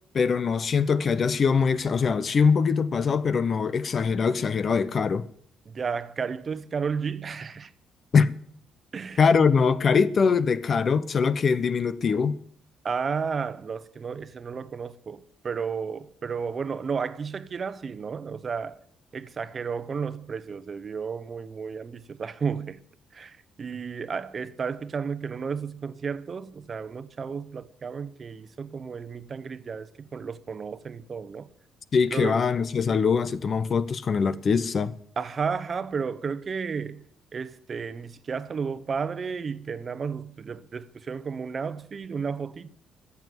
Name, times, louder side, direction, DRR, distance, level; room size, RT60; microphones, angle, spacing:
voice 1, 0.1-5.3 8.1-8.3 9.2-12.4 31.9-34.9, left 5 dB, 45° left, 0.8 m, -22 dB
voice 2, 5.7-7.7 8.9-9.2 12.8-18.8 19.1-22.8 23.1-31.5 32.1-32.4 35.2-37.0 37.3-42.7, right 5 dB, 40° right, 0.9 m, -32 dB
14.0 x 7.2 x 9.4 m
cardioid pair, 90°, 0 cm